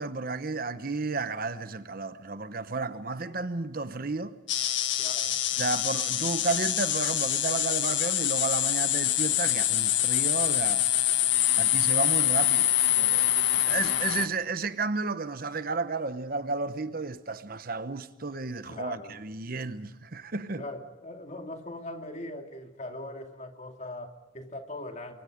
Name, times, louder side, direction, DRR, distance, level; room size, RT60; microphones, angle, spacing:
voice 1, 0.0-4.4 5.5-10.8 11.6-13.3 13.6-20.6, right 3 dB, 45° right, 0.9 m, -32 dB
sound 1, 4.5-14.3, left 12 dB, 65° left, 1.7 m, -25 dB
voice 2, 5.0-5.4 18.7-19.2 20.6-25.2, left 1 dB, 35° left, 2.7 m, -40 dB
29.5 x 24.0 x 5.1 m
head